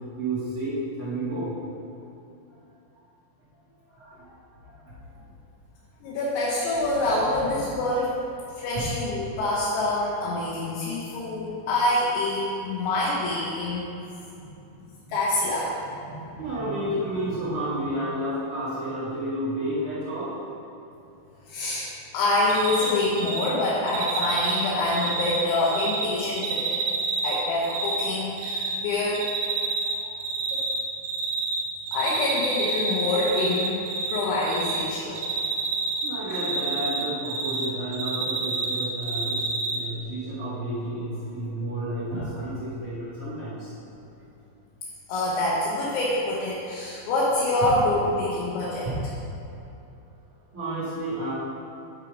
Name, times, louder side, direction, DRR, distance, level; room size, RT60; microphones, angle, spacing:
voice 1, 0.2-1.5 3.9-4.3 4.6-5.0 7.2-7.3 7.7-7.8 8.7-8.9 15.0-15.1 15.8-20.4 29.9-30.1 36.0-43.7 48.8-49.0 50.5-51.3, right 1 dB, 45° right, -12 dB, 1.8 m, -31 dB
voice 2, 6.0-8.1 8.6-13.9 15.1-15.7 21.5-21.9 22.1-26.8 27.2-29.2 30.5-30.6 31.9-33.8 34.1-35.2 36.3-36.4 45.1-48.9, left 2 dB, 75° left, -6 dB, 3.2 m, -26 dB
Cricket, 22.5-22.9 23.2-23.5 23.9-26.1 26.4-28.1 28.4-28.7 29.1-29.9 30.2-31.6 31.9-34.2 34.4-34.8 35.2-37.7 37.9-39.8, right 5 dB, 75° right, 2.6 m, -28 dB
12.0 x 4.6 x 5.0 m, 2.7 s
omnidirectional pair, 5.9 m